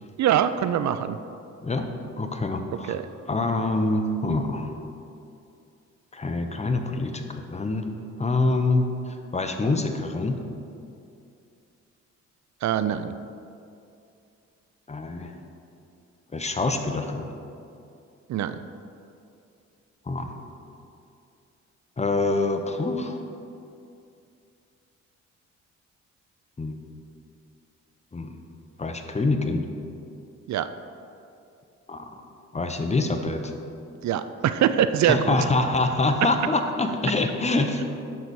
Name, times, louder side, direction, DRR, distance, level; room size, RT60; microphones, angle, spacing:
voice 1, 0.2-1.2 2.8-3.0 12.6-13.1 18.3-18.6 30.5-30.7 34.0-35.4, right 10 dB, 70° right, 11 dB, 0.4 m, -23 dB
voice 2, 2.2-2.9 3.3-4.7 6.1-7.9 8.2-10.4 14.9-15.3 16.3-17.3 20.1-20.4 22.0-23.2 26.6-26.8 28.1-28.4 28.8-29.6 31.9-32.2 32.5-33.5 35.1-37.8, left 2 dB, 25° left, 5 dB, 0.7 m, -25 dB
10.5 x 4.0 x 6.2 m, 2.6 s
cardioid pair, 105°, 29 cm